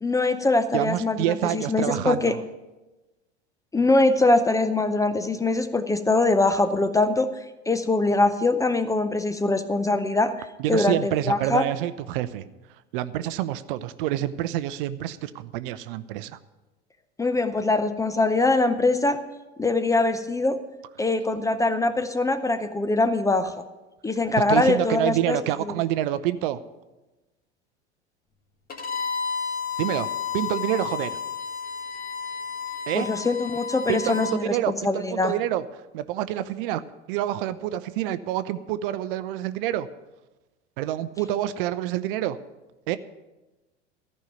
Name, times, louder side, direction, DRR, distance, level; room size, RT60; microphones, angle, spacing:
voice 1, 0.0-2.3 3.7-7.3 7.7-11.6 17.2-19.2 19.6-20.6 21.0-23.5 24.0-25.4 32.9-35.3, left 2 dB, 10° left, 11 dB, 0.6 m, -23 dB
voice 2, 0.7-2.4 10.6-12.5 12.9-16.4 24.5-26.6 29.8-30.1 30.3-31.2 32.9-33.1 33.9-35.6 35.9-36.8 37.1-39.9 40.8-42.4 42.9-43.0, right 13 dB, 50° right, 14 dB, 0.6 m, -27 dB
Bowed string instrument, 28.7-34.4, left 6 dB, 25° left, 1.5 m, -32 dB
14.0 x 5.5 x 9.2 m, 1.1 s
figure-of-eight pair, 80°, 34 cm